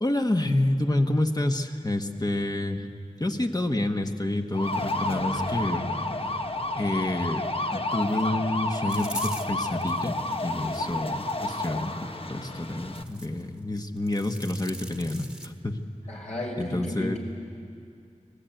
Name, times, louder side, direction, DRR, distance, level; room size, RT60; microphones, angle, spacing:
voice 1, 0.0-2.9 3.2-5.9 6.8-7.4 7.7-10.2 10.4-15.8 16.6-17.2, left 1 dB, 30° left, 5 dB, 1.5 m, -28 dB
sound 1, 4.5-13.0, left 2 dB, 45° left, 1.2 m, -30 dB
sound 2, 8.9-10.1 10.7-11.3 12.6-13.4 13.8-15.5, right 1 dB, 5° right, 1.5 m, -41 dB
voice 2, 16.1-17.2, left 1 dB, 65° left, -1 dB, 5.4 m, -33 dB
25.5 x 18.5 x 9.1 m, 2.4 s
wide cardioid pair, 65°, 13 cm